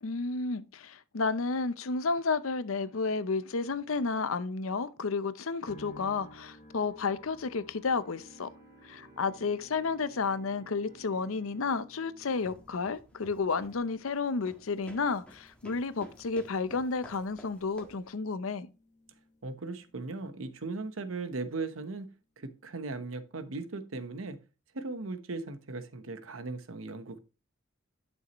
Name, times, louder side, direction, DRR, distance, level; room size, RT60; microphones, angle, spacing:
voice 1, 0.0-8.5 8.8-18.7, left 4 dB, 85° left, 0.7 m, -32 dB
sound 1, 5.7-20.9 21.2-22.0, equal, 40° left, 1.0 m, -57 dB
Bowed string instrument, 7.8-13.8, right 3 dB, 60° right, 2.4 m, -59 dB
sound 2, 12.2-18.1, equal, 5° left, 1.5 m, -53 dB
voice 2, 19.4-22.1 22.4-24.4 24.7-27.2, right 3 dB, 80° right, 1.0 m, -38 dB
10.5 x 6.3 x 3.0 m
head